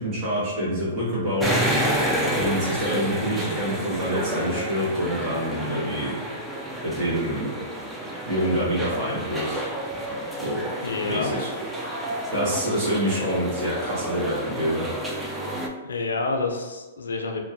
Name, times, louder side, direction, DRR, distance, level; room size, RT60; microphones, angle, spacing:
voice 1, 0.0-1.7 2.3-6.1 6.8-7.5 8.2-9.7 10.4-10.6 11.1-11.5 12.3-14.9, equal, 30° right, -10 dB, 1.4 m, -26 dB
sound 1, 1.4-15.7, right 1 dB, 10° right, 0.4 m, -29 dB
voice 2, 10.8-11.3 15.8-17.4, left 3 dB, 85° left, 3 dB, 0.4 m, -28 dB
2.9 x 2.2 x 2.6 m, 1.2 s
hypercardioid pair, 125°, 0 cm